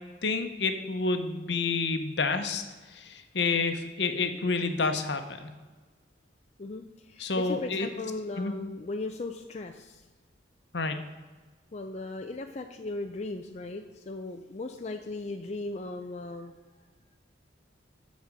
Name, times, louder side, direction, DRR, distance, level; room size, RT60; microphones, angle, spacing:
voice 1, 0.2-2.6 2.9-5.5 7.2-7.9 8.4-8.5 10.7-11.0, left 4 dB, 65° left, 7 dB, 0.9 m, -29 dB
voice 2, 6.6-10.0 11.7-16.5, left 2 dB, 35° left, 5 dB, 0.4 m, -37 dB
12.5 x 4.2 x 6.0 m, 1.3 s
head